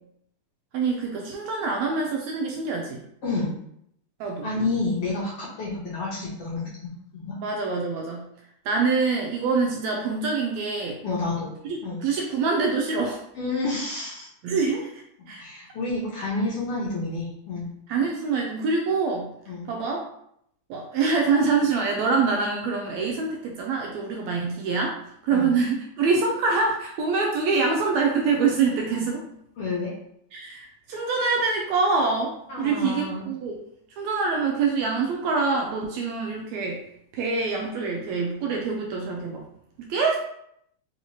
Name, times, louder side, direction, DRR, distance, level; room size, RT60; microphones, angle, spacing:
voice 1, 0.7-3.0 4.2-4.5 7.4-8.2 8.6-11.0 11.7-13.2 14.4-15.4 17.9-19.3 19.7-20.0 20.7-24.9 25.2-29.2 30.3-33.6 34.0-36.8 37.1-39.4 39.8-40.2, right 4 dB, 80° right, 0 dB, 1.7 m, -25 dB
voice 2, 4.4-6.7 7.1-7.4 11.0-11.5 11.8-12.0 13.4-14.3 15.4-17.7 19.5-19.7 25.3-25.5 29.6-29.9 32.5-33.3, left 3 dB, 70° left, -6 dB, 1.5 m, -29 dB
4.6 x 2.9 x 2.9 m, 0.72 s
omnidirectional pair, 3.5 m